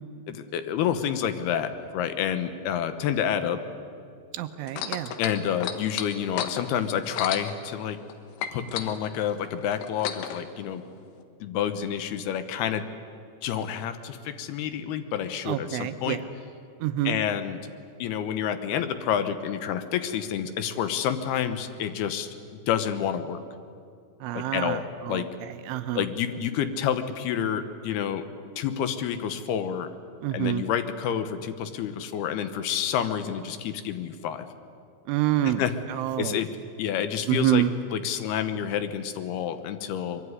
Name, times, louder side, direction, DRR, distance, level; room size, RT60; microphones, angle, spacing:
voice 1, 0.3-3.6 5.2-8.0 8.5-10.8 11.4-12.9 13.4-16.2 17.0-17.6 18.0-22.3 22.7-23.4 24.3-25.3 25.9-28.2 28.6-29.9 30.3-34.5 35.4-35.7 36.2-36.5 36.8-37.6 37.9-40.2, left 9 dB, 70° left, 10 dB, 2.6 m, -29 dB
voice 2, 4.3-5.1 15.5-16.2 16.8-17.2 24.2-26.1 30.2-30.6 35.1-36.4 37.3-37.7, right 13 dB, 85° right, 9 dB, 3.2 m, -27 dB
sound 1, 4.7-8.1 8.4-10.4 11.2-11.3, left 9 dB, 90° left, 4.0 m, -33 dB
24.0 x 23.0 x 9.7 m, 2.5 s
omnidirectional pair, 5.7 m